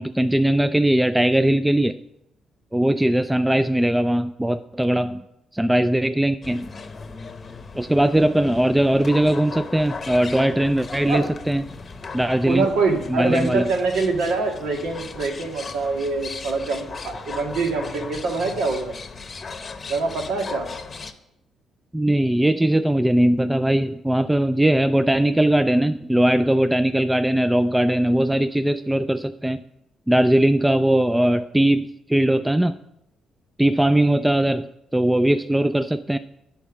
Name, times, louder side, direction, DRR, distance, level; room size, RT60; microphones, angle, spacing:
voice 1, 0.0-2.0 2.7-5.2 5.5-6.7 7.7-11.6 12.1-12.7 13.1-13.7 21.9-29.6 30.1-32.8 33.6-36.2, right 1 dB, 10° right, 11 dB, 0.3 m, -20 dB
sound 1, 6.4-21.1, left 4 dB, 35° left, 0.8 m, -37 dB
voice 2, 12.4-18.9 19.9-20.7, right 3 dB, 85° right, 2 dB, 1.7 m, -24 dB
9.3 x 4.4 x 7.1 m, 0.85 s
cardioid pair, 90°, 0 cm